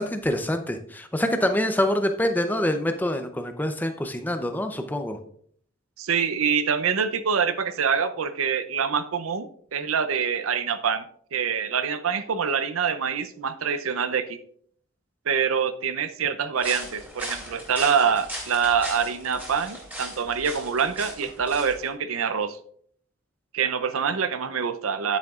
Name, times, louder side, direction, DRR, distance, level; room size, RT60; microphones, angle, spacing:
voice 1, 0.0-5.2, left 1 dB, 10° left, 7 dB, 0.6 m, -26 dB
voice 2, 6.0-11.0 11.3-14.4 15.3-22.6 23.5-25.2, right 6 dB, 90° right, 11 dB, 0.6 m, -25 dB
sound 1, 16.6-21.9, equal, 10° right, 2.3 m, -38 dB
9.4 x 9.3 x 2.4 m, 0.62 s
head